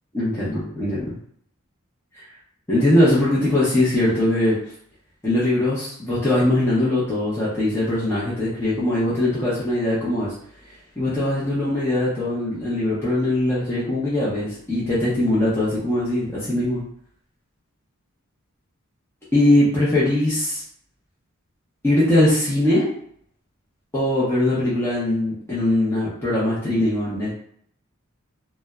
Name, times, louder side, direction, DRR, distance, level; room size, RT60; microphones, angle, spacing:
voice 1, 0.1-1.1 2.7-4.6 5.2-10.3 11.0-16.8 19.3-20.6 21.8-22.9 23.9-27.3, left 1 dB, 10° left, -9 dB, 0.6 m, -21 dB
2.6 x 2.0 x 2.3 m, 0.65 s
head